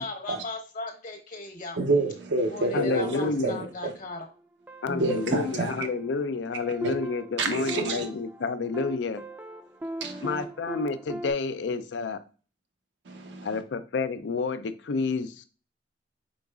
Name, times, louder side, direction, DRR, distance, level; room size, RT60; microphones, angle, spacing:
voice 1, 0.0-1.8 2.5-4.3, left 2 dB, 50° left, 1.1 m, -37 dB
voice 2, 1.8-3.9 5.0-5.9 6.8-6.9 7.4-8.1 10.0-10.4 13.1-13.6, right 2 dB, 70° right, 0.6 m, -28 dB
voice 3, 2.7-3.6 4.8-9.2 10.2-12.2 13.4-15.3, left 4 dB, 70° left, 0.5 m, -29 dB
sound 1, 3.0-4.2 4.7-11.3, right 1 dB, 10° right, 0.4 m, -39 dB
5.1 x 3.9 x 2.3 m
head